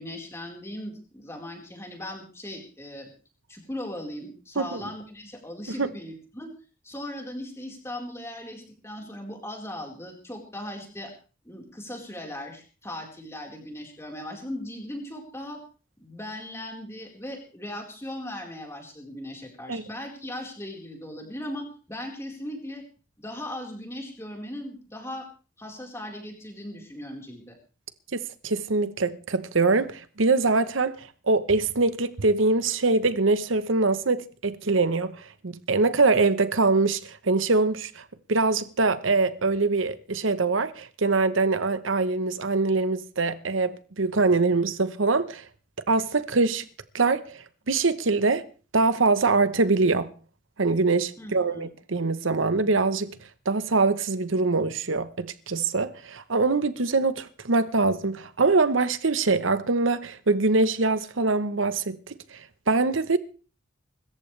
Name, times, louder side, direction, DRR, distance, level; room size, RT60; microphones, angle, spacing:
voice 1, 0.0-3.1 3.5-6.5 6.8-11.1 11.4-15.6 16.0-22.8 23.2-25.3 25.6-27.6 51.2-51.7, left 1 dB, 15° left, 4.3 m, -38 dB
voice 2, 28.1-38.0 38.3-45.4 45.9-46.6 46.9-48.4 48.7-50.1 50.6-53.1 53.5-62.4 62.7-63.2, right 3 dB, 90° right, 1.0 m, -23 dB
25.0 x 14.0 x 3.3 m
head